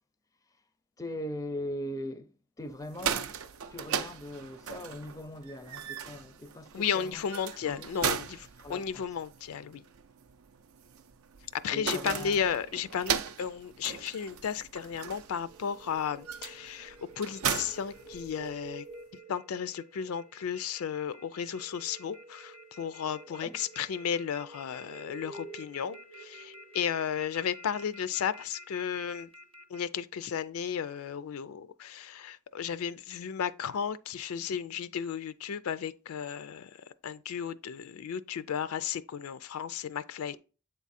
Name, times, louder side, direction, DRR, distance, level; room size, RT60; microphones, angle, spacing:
voice 1, 1.0-2.3 2.6-3.3 3.7-7.2 7.6-8.2 8.6-9.1 11.7-12.4 23.3-23.6, left 1 dB, 15° left, 0.4 m, -40 dB
sound 1, 2.8-18.7, right 7 dB, 75° right, 0.5 m, -38 dB
voice 2, 6.7-9.8 11.5-18.8 19.3-29.3 29.7-36.7 37.0-40.4, left 7 dB, 75° left, 0.4 m, -34 dB
sound 2, 15.2-29.8, right 2 dB, 25° right, 0.8 m, -50 dB
7.8 x 3.6 x 4.1 m
head